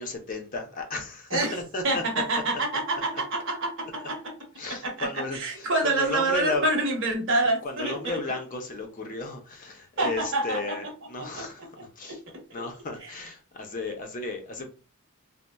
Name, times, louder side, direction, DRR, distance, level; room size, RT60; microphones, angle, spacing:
voice 1, 0.0-2.2 2.9-3.2 4.6-6.7 7.3-12.2 12.5-14.7, left 3 dB, 40° left, 0.5 m, -34 dB
voice 2, 1.8-4.2 4.8-5.1 5.4-8.2 10.0-10.6 11.2-11.4 12.0-12.2, right 2 dB, 60° right, 0.9 m, -27 dB
3.9 x 2.0 x 2.2 m
head